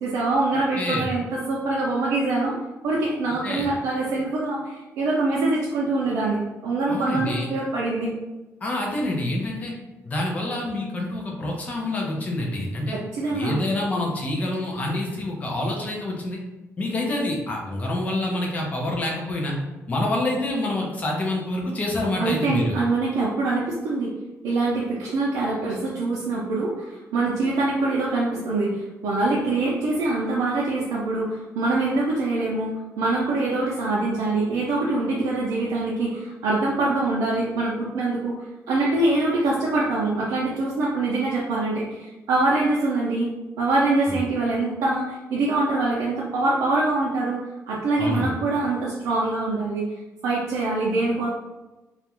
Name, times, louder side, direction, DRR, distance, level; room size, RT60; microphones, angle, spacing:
voice 1, 0.0-2.6 2.8-8.1 12.9-13.6 22.2-24.1 24.4-38.4 38.7-43.3 43.6-47.4 47.7-49.9 50.2-51.3, right 2 dB, 85° right, -5 dB, 0.5 m, -24 dB
voice 2, 0.8-1.1 3.4-3.7 6.9-7.5 8.6-9.7 10.0-13.0 13.3-16.4 16.8-19.5 19.9-22.8 44.1-44.2 48.0-48.3, left 1 dB, 25° left, -1 dB, 0.4 m, -27 dB
2.3 x 2.1 x 2.9 m, 1.1 s
cardioid pair, 170°, 6 cm